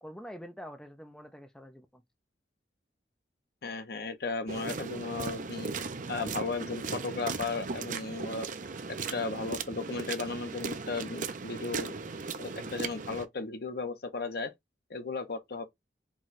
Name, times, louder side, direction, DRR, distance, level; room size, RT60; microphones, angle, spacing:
voice 1, 0.0-2.0, equal, 5° left, 0.5 m, -46 dB
voice 2, 3.6-5.7 6.1-8.5 9.1-11.9 12.4-14.5 14.9-15.6, left 3 dB, 60° left, 0.8 m, -35 dB
sound 1, 4.5-13.2, right 4 dB, 45° right, 0.6 m, -37 dB
4.7 x 2.3 x 4.1 m
head